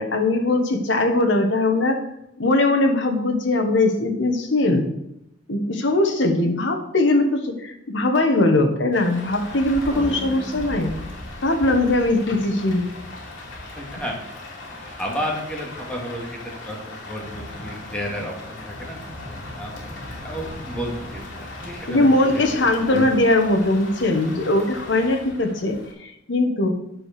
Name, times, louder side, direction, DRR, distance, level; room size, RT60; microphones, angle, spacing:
voice 1, 0.0-2.0 2.4-4.9 5.5-10.9 11.4-12.9 21.9-26.7, left 2 dB, 65° left, 5 dB, 1.3 m, -20 dB
Rain, 8.9-25.9, left 2 dB, 85° left, 2.6 m, -37 dB
sound 1, 9.9-12.4, right 1 dB, 20° right, 0.7 m, -37 dB
voice 2, 13.8-19.0 19.5-22.1 22.3-22.5, equal, 5° left, -2 dB, 2.1 m, -32 dB
9.6 x 5.0 x 6.6 m, 0.82 s
head